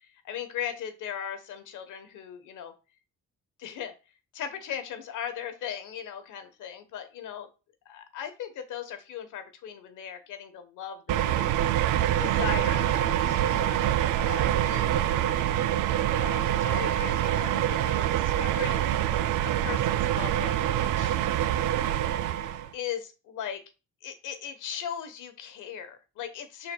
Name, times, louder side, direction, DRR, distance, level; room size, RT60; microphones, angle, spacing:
voice 1, 0.2-2.7 3.6-3.9 4.3-7.5 7.8-11.5 12.2-13.4 14.2-14.9 15.2-15.6 16.1-18.8 19.4-21.2 22.7-23.6 24.0-26.7, left 9 dB, 85° left, 8 dB, 1.2 m, -38 dB
sound 1, 11.1-22.7, right 12 dB, 85° right, 0.5 m, -25 dB
11.5 x 4.0 x 2.3 m, 0.31 s
cardioid pair, 90°, 30 cm